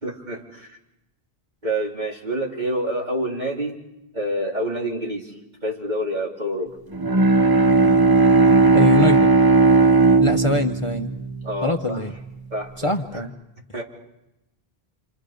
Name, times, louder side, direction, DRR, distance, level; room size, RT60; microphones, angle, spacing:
voice 1, 0.0-0.8 1.6-3.8 4.1-5.3 5.6-6.8 11.4-12.0 12.5-13.2 13.7-13.8, right 1 dB, 45° right, -2 dB, 3.6 m, -27 dB
Bowed string instrument, 6.9-12.3, right 3 dB, 25° right, 0.8 m, -17 dB
voice 2, 8.7-9.3 10.2-11.1 11.6-12.1 12.8-13.3, left 2 dB, 35° left, 4 dB, 0.9 m, -23 dB
28.5 x 27.5 x 5.1 m, 0.91 s
omnidirectional pair, 1.0 m